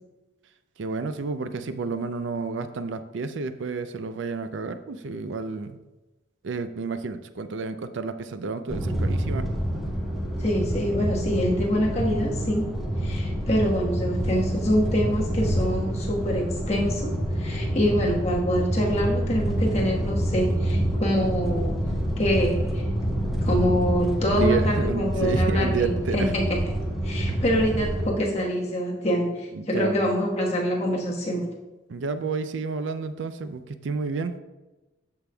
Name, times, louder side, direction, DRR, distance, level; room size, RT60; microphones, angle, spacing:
voice 1, 0.8-5.8 6.4-9.5 24.3-26.3 29.5-30.2 31.9-34.3, right 4 dB, 70° right, 10 dB, 0.4 m, -30 dB
sound 1, 8.7-28.1, equal, ahead, 0.9 m, -27 dB
voice 2, 10.4-12.7 13.0-21.9 22.2-22.8 23.4-26.4 27.0-31.5, equal, 35° left, -2 dB, 1.3 m, -25 dB
12.5 x 5.2 x 2.3 m, 1.1 s
head